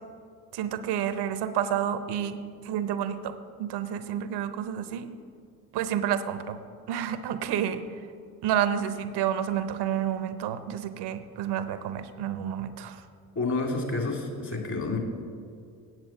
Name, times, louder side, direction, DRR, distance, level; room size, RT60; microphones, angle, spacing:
voice 1, 0.5-2.4 2.6-5.1 5.7-6.6 6.9-7.9 8.4-13.0, right 9 dB, 75° right, 11 dB, 0.8 m, -29 dB
voice 2, 13.3-15.0, left 3 dB, 45° left, 2 dB, 2.5 m, -29 dB
9.2 x 7.8 x 7.1 m, 2.3 s
supercardioid pair, 65°, 41 cm